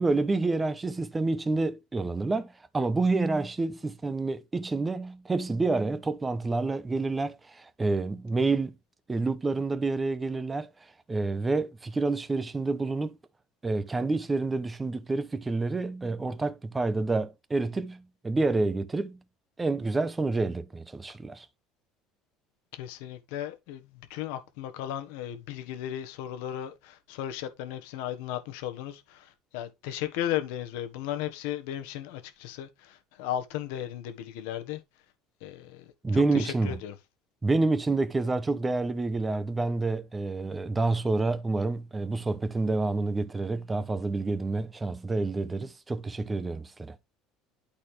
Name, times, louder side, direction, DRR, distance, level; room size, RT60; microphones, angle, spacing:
voice 1, 0.0-8.7 9.1-10.7 11.1-13.2 13.6-19.2 19.6-21.5 36.0-36.8 37.4-47.0, right 3 dB, 15° right, 0.9 m, -28 dB
voice 2, 22.7-34.8 35.4-36.9, left 11 dB, 85° left, 1.3 m, -36 dB
11.5 x 4.3 x 3.3 m
cardioid pair, 120°, 0 cm